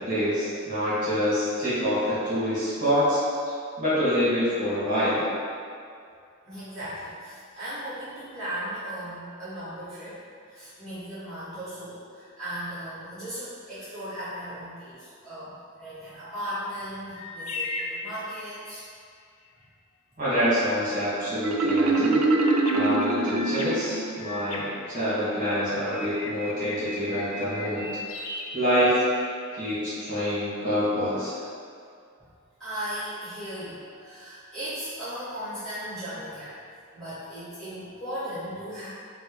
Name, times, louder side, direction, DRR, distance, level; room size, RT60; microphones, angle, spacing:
voice 1, 0.0-3.2 3.8-5.2 20.2-22.2 22.7-27.8 28.5-29.0 29.5-31.3, equal, 40° right, -13 dB, 1.4 m, -26 dB
voice 2, 6.4-10.2 10.5-18.8 32.2-32.3 32.6-36.5 36.9-38.9, equal, 5° left, -17 dB, 1.2 m, -37 dB
sound 1, 17.1-18.8 22.3-25.5 25.9-29.4, left 2 dB, 80° left, 0.4 m, -37 dB
Marimba xylophone, 21.4-24.2, right 2 dB, 85° right, 0.3 m, -23 dB
4.3 x 2.0 x 3.0 m, 2.3 s
head